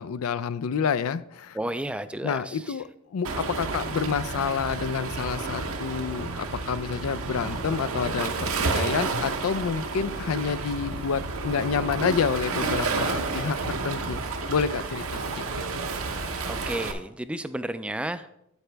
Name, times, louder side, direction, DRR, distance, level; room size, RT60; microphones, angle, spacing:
voice 1, 0.0-1.6 2.2-14.2 14.5-15.4, left 6 dB, 85° left, 16 dB, 0.4 m, -29 dB
voice 2, 1.5-2.6 16.4-18.2, right 1 dB, 5° right, 12 dB, 0.3 m, -32 dB
Waves surf, 3.2-16.9, right 3 dB, 75° right, 0.9 m, -30 dB
9.3 x 8.3 x 3.3 m, 0.80 s
head